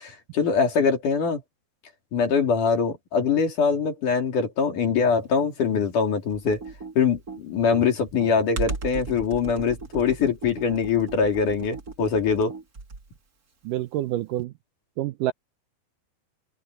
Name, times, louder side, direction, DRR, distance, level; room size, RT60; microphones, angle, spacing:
voice 1, 0.0-1.4 2.1-6.6 7.0-12.5, left 5 dB, 60° left, 4.6 m, -23 dB
Computer keyboard, 6.3-13.2, right 3 dB, 30° right, 2.2 m, -36 dB
voice 2, 13.6-14.5 15.0-15.3, right 14 dB, 75° right, 2.0 m, -27 dB
omnidirectional pair, 4.2 m